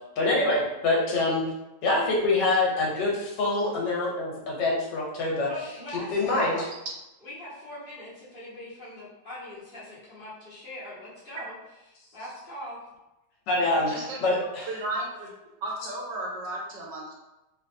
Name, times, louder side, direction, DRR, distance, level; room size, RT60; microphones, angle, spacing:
voice 1, 0.2-1.4 1.8-5.5 6.1-6.6 13.5-14.7, left 2 dB, 80° left, -2 dB, 1.5 m, -25 dB
voice 2, 5.4-6.7 7.2-11.5 12.1-12.8 13.5-13.7, left 1 dB, 35° left, -9 dB, 1.2 m, -41 dB
voice 3, 13.9-14.2 14.7-15.3 15.6-17.1, right 2 dB, 80° right, -2 dB, 1.5 m, -34 dB
4.1 x 2.5 x 2.6 m, 0.97 s
omnidirectional pair, 1.9 m